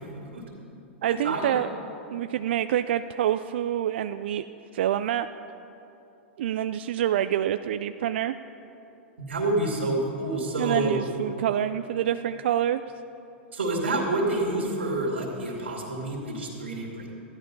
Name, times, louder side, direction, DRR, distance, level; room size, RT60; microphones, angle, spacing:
voice 1, 1.0-1.7 2.1-4.5 4.7-5.3 6.4-8.3 10.6-12.8, right 11 dB, 70° right, 10 dB, 0.4 m, -26 dB
voice 2, 9.2-11.0 13.5-17.1, right 2 dB, 85° right, -2 dB, 2.7 m, -28 dB
14.5 x 11.5 x 5.4 m, 2.9 s
hypercardioid pair, 110°, 6 cm